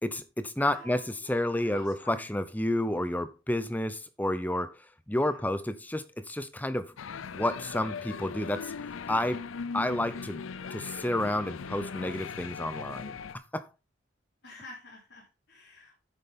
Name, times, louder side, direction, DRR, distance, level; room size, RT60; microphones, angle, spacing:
voice 1, 0.0-4.8 5.1-6.9 7.3-8.7 9.1-9.5 9.7-10.4 10.7-13.7, left 1 dB, 10° left, 0.7 m, -30 dB
voice 2, 0.6-2.3 5.2-5.5 14.4-16.0, left 2 dB, 55° left, 4.0 m, -49 dB
sound 1, 7.0-13.3, left 5 dB, 90° left, 0.5 m, -39 dB
9.9 x 7.7 x 3.7 m
head